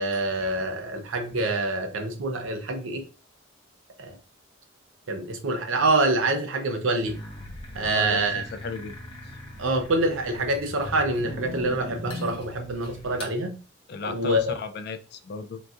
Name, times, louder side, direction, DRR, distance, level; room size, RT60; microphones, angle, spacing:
voice 1, 0.0-3.0 4.0-4.2 5.1-7.2 7.7-8.4 9.6-13.6 14.1-14.5, right 2 dB, 70° right, 0.6 m, -26 dB
sound 1, 7.1-13.4, left 1 dB, 25° left, 0.7 m, -40 dB
voice 2, 7.8-9.4 13.9-15.6, left 5 dB, 50° left, 0.3 m, -35 dB
3.9 x 2.3 x 2.4 m
head